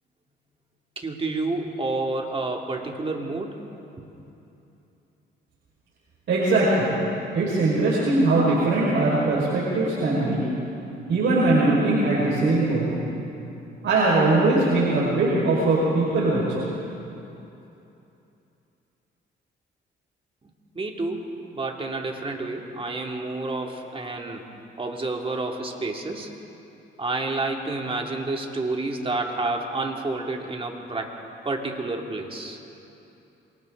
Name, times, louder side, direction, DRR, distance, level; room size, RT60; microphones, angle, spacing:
voice 1, 1.0-3.6 4.0-4.1 20.7-21.3 21.5-24.4 24.8-26.3 27.0-31.1 31.4-32.6, right 2 dB, 30° right, 1 dB, 2.7 m, -29 dB
voice 2, 6.3-7.0 7.3-10.4 11.1-13.0 13.8-16.7, right 2 dB, 65° right, -7 dB, 5.4 m, -21 dB
27.5 x 24.0 x 4.0 m, 2.9 s
cardioid pair, 90°, 20 cm